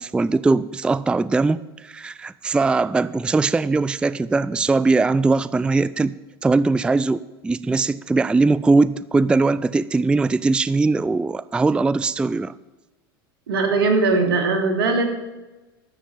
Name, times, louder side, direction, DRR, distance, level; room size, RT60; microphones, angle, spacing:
voice 1, 0.0-6.1 6.4-12.5, right 3 dB, 10° right, 16 dB, 0.3 m, -20 dB
voice 2, 13.5-15.1, right 3 dB, 80° right, 6 dB, 2.6 m, -19 dB
11.5 x 7.3 x 8.9 m, 1.1 s
hypercardioid pair, 95°, 13 cm